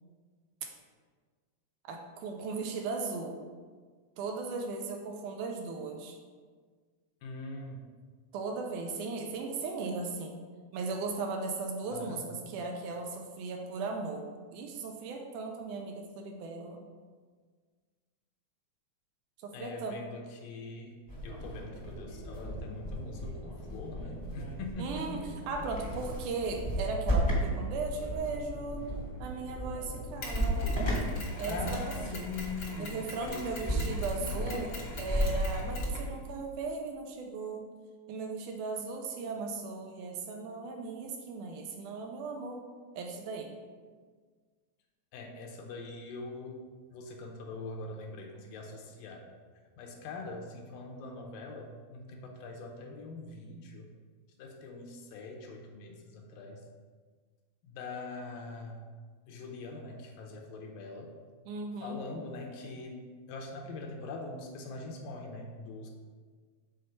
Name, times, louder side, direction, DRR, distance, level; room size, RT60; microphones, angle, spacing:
voice 1, 1.8-3.4 4.2-6.2 8.3-10.4 10.7-16.8 19.4-19.9 24.8-25.2 25.5-28.8 29.2-30.8 31.4-31.8 32.1-32.2 32.8-37.6 38.1-42.6 43.0-43.5 61.5-62.0, right 4 dB, 85° right, 2 dB, 1.8 m, -37 dB
voice 2, 7.2-7.8 11.9-12.3 19.5-25.5 31.5-34.5 45.1-46.6 46.9-49.3 49.8-53.9 54.4-56.6 57.6-58.8 59.3-61.1 61.8-65.9, left 3 dB, 75° left, 1 dB, 2.3 m, -43 dB
sound 1, 21.1-36.1, equal, 15° left, 0.9 m, -35 dB
Mechanisms, 30.2-36.5, left 2 dB, 55° left, 1.4 m, -44 dB
6.4 x 4.2 x 5.7 m, 1.6 s
omnidirectional pair, 4.3 m